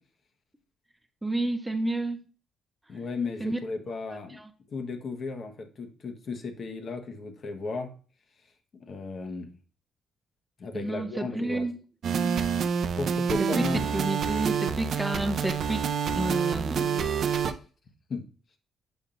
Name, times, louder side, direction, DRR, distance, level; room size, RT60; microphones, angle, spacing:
voice 1, 1.2-2.2 3.4-3.6 4.3-4.5 10.7-11.8 13.4-13.6 13.9-15.9 16.1-17.2, right 2 dB, 10° right, 7 dB, 0.6 m, -30 dB
voice 2, 2.9-4.4 4.7-7.9 8.7-9.5 10.6-11.6 12.1-12.3 13.0-13.8 18.1-18.2, left 4 dB, 50° left, 5 dB, 1.1 m, -35 dB
sound 1, 12.0-17.5, right 7 dB, 60° right, 0.5 m, -27 dB
7.2 x 5.2 x 2.5 m, 0.38 s
cardioid pair, 90°, 0 cm